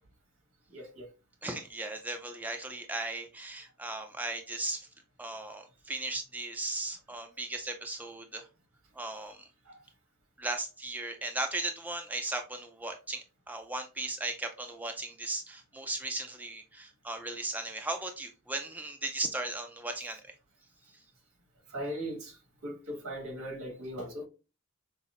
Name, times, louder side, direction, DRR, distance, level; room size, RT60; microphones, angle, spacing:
voice 1, 0.7-1.1 9.7-9.8 21.7-24.2, equal, 85° right, 1.5 m, -39 dB
voice 2, 1.4-4.9 5.2-8.4 9.0-9.5 10.4-20.2, right 2 dB, 10° right, 0.3 m, -37 dB
5.5 x 2.0 x 2.4 m
head